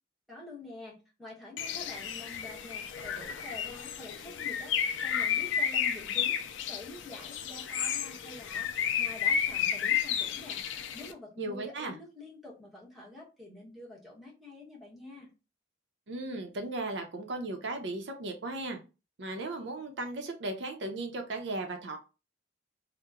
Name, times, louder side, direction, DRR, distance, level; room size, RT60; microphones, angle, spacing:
voice 1, 0.3-8.7 9.0-15.3, left 2 dB, ahead, -4 dB, 0.9 m, -47 dB
Bird, 1.6-11.1, left 8 dB, 85° left, 0.4 m, -32 dB
voice 2, 11.4-11.9 16.1-18.8 19.2-22.0, right 2 dB, 75° right, 4 dB, 0.6 m, -36 dB
2.9 x 2.1 x 3.5 m, 0.30 s
head